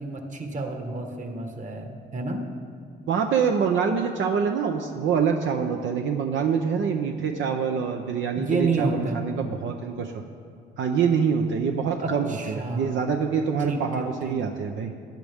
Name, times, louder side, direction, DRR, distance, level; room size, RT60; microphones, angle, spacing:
voice 1, 0.0-2.4 8.3-9.2 12.0-13.1 13.6-14.4, right 3 dB, 40° right, 4 dB, 1.5 m, -30 dB
voice 2, 3.1-10.2 10.8-14.9, right 6 dB, 75° right, 4 dB, 0.7 m, -25 dB
15.5 x 10.0 x 3.6 m, 2.2 s
cardioid pair, 90°, 20 cm